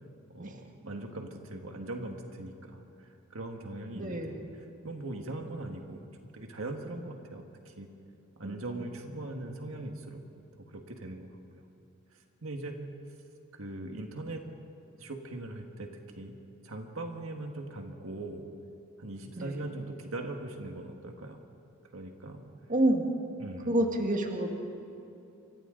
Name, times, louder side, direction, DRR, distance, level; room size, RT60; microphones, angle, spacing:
voice 1, 0.3-4.4 4.8-7.9 8.4-10.2 10.7-11.7 12.1-12.9 13.5-14.5 15.0-15.9 16.2-16.4 16.6-18.4 19.0-21.4 21.9-22.4 23.4-23.7, right 2 dB, 70° right, 3 dB, 1.8 m, -40 dB
voice 2, 4.0-4.5 8.4-8.6 19.4-19.6 22.7-23.0 23.7-24.5, right 1 dB, 40° right, 2 dB, 1.8 m, -28 dB
29.0 x 25.0 x 4.0 m, 2.8 s
head